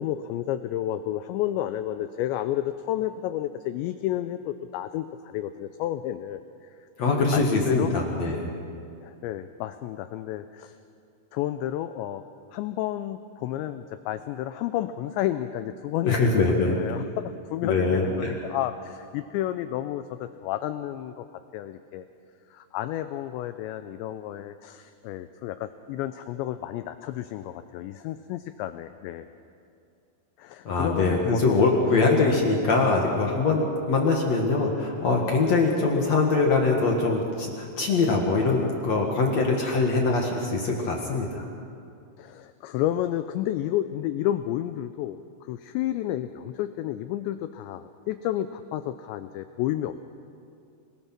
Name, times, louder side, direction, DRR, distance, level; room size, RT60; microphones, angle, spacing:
voice 1, 0.0-6.8 7.0-7.9 9.0-10.8 11.3-12.2 12.5-16.4 16.7-21.2 21.5-22.1 22.5-29.3 30.4-31.6 42.2-45.2 45.5-50.0, left 12 dB, 85° left, 10 dB, 2.5 m, -31 dB
voice 2, 7.0-8.5 16.0-16.8 17.6-18.4 30.7-41.4, left 3 dB, 60° left, 0 dB, 1.8 m, -23 dB
26.0 x 19.5 x 6.0 m, 2.5 s
omnidirectional pair, 5.8 m